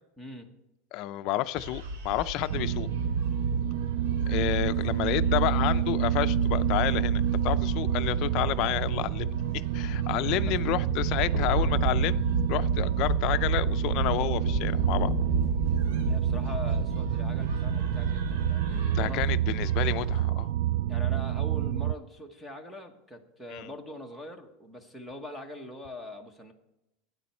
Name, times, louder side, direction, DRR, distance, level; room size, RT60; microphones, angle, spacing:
voice 1, 0.2-0.5 10.0-10.6 16.0-19.3 20.9-26.5, left 1 dB, ahead, 1.2 m, -42 dB
voice 2, 0.9-2.9 4.3-9.3 9.7-12.2 12.5-15.1 18.9-20.5 23.5-23.7, left 14 dB, 45° left, 0.5 m, -30 dB
sound 1, 1.6-20.3, equal, 85° right, 2.7 m, -35 dB
sound 2, 2.5-21.9, right 10 dB, 65° right, 0.3 m, -28 dB
12.5 x 9.4 x 4.4 m
supercardioid pair, 165°, 0 cm